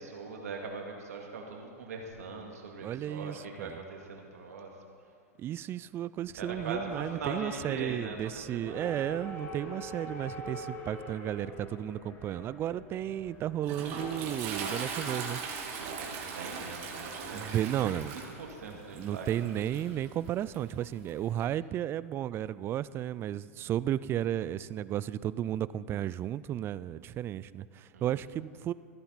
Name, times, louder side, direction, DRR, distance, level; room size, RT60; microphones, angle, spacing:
voice 1, 0.0-4.7 6.4-8.9 15.8-19.3 19.5-19.7 27.9-28.0, right 3 dB, 85° right, 1 dB, 2.2 m, -41 dB
voice 2, 2.8-3.8 5.4-15.4 17.3-18.1 18.9-28.7, right 11 dB, 30° right, 18 dB, 0.3 m, -33 dB
sound 1, 6.2-21.3, left 1 dB, 25° left, 1.9 m, -48 dB
Toilet flush, 13.1-21.4, right 5 dB, 50° right, 2.2 m, -40 dB
14.5 x 12.5 x 4.1 m, 2.3 s
hypercardioid pair, 115°, 8 cm